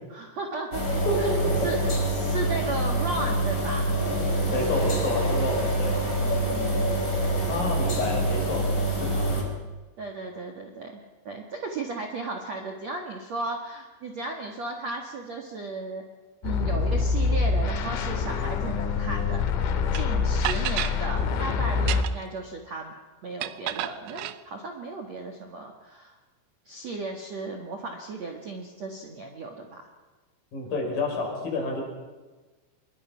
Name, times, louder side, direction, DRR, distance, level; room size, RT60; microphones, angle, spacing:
voice 1, 0.1-0.8 1.2-1.4 1.6-3.9 6.2-7.2 10.0-11.0 11.3-16.0 16.4-22.9 23.2-26.2 26.7-29.8, right 3 dB, 50° right, 2 dB, 2.3 m, -35 dB
sound 1, 0.7-9.4, right 1 dB, 15° left, 4.7 m, -26 dB
voice 2, 1.1-1.7 4.5-6.0 7.5-9.3 30.5-31.8, left 2 dB, 45° left, 1 dB, 6.9 m, -29 dB
sound 2, 16.4-22.0, left 5 dB, 90° left, 4.3 m, -25 dB
sound 3, 19.9-20.0 20.4-21.0 21.7-22.3 23.4-24.4, right 14 dB, 75° right, 2.7 m, -31 dB
26.5 x 22.5 x 5.9 m, 1.3 s
omnidirectional pair, 5.6 m